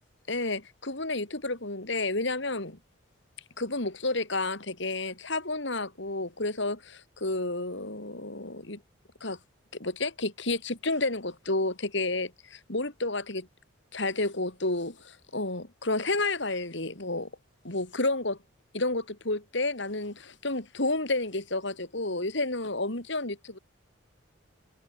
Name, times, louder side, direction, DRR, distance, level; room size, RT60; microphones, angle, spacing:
voice 1, 0.3-2.8 3.6-8.8 9.2-9.4 9.8-13.5 13.9-17.3 17.6-18.4 18.7-23.6, left 2 dB, 60° left, 3.0 m, -31 dB
head